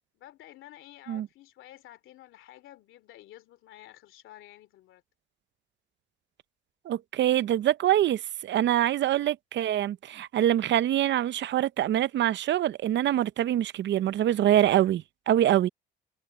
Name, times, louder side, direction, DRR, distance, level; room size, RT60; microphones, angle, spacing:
voice 1, 0.1-5.0, left 14 dB, 90° left, 2.8 m, -51 dB
voice 2, 6.9-15.7, right 12 dB, 65° right, 0.6 m, -25 dB
cardioid pair, 90°, 20 cm